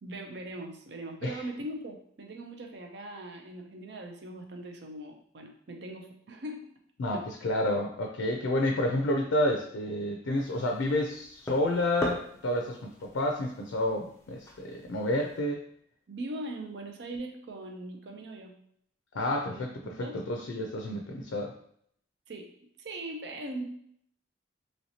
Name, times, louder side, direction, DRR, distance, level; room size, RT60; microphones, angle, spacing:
voice 1, 0.0-6.7 7.1-7.3 16.1-18.5 19.5-20.2 22.3-22.5 22.8-23.6, right 1 dB, 60° right, 3 dB, 0.5 m, -40 dB
voice 2, 7.0-15.6 19.1-21.5, left 1 dB, 80° left, 2 dB, 0.4 m, -30 dB
putting some solid objects on the table, 10.3-15.4, left 1 dB, 15° left, 0.4 m, -42 dB
3.1 x 2.8 x 2.7 m, 0.66 s
head